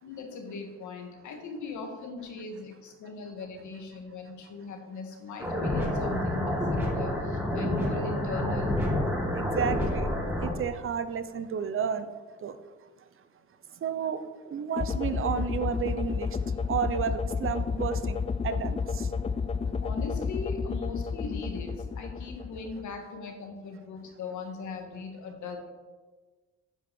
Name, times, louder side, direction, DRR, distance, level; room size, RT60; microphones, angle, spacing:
voice 1, 0.0-8.7 19.8-25.6, left 4 dB, 75° left, 1.9 m, -39 dB
sound 1, 5.4-10.5, left 1 dB, 5° right, 2.3 m, -28 dB
voice 2, 9.3-10.1 10.4-12.1 12.4-12.6 13.8-14.2 14.5-16.4 16.7-18.2 18.4-19.1, right 7 dB, 45° right, 0.8 m, -31 dB
sound 2, 14.8-23.0, left 5 dB, 20° left, 0.4 m, -31 dB
9.1 x 5.0 x 7.1 m
cardioid pair, 90°, 30 cm